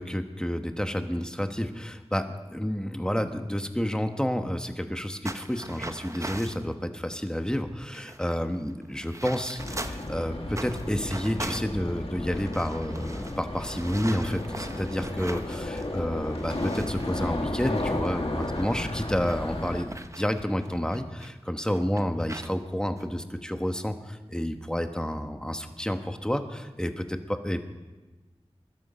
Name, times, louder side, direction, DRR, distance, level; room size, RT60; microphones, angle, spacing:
voice 1, 0.0-27.6, equal, 5° left, 6 dB, 1.3 m, -30 dB
sound 1, 5.2-6.7 7.4-7.5 7.7-10.1 10.5-15.9 16.2-21.3 21.7-22.5 23.0-23.1 23.7-23.9, right 1 dB, 30° right, 0.8 m, -41 dB
sound 2, 9.6-19.8, left 2 dB, 60° left, 1.8 m, -33 dB
21.5 x 12.5 x 5.1 m, 1.2 s
wide cardioid pair, 55°, 11 cm